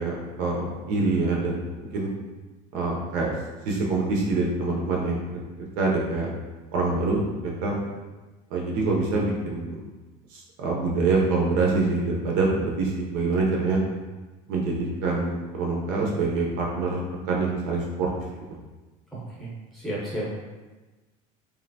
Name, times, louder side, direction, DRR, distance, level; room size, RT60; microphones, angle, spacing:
voice 1, 0.0-1.6 1.9-2.1 2.7-3.3 3.6-5.4 5.8-6.3 6.7-7.7 8.5-9.8 10.3-13.8 14.5-18.1, right 3 dB, 55° right, -2 dB, 0.5 m, -25 dB
voice 2, 19.7-20.3, equal, ahead, -9 dB, 0.8 m, -31 dB
3.2 x 2.6 x 2.6 m, 1.2 s
cardioid pair, 180°, 17 cm